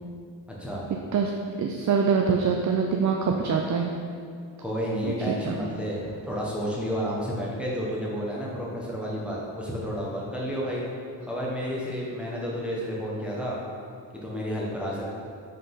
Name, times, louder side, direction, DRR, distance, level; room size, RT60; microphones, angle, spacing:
voice 1, 1.6-3.9 5.1-5.2 5.4-5.5, right 5 dB, 40° right, 2 dB, 0.5 m, -24 dB
voice 2, 4.6-10.8 11.3-13.6 14.2-15.1, equal, ahead, -5 dB, 1.2 m, -31 dB
5.6 x 3.8 x 5.4 m, 2.2 s
cardioid pair, 85°, 45 cm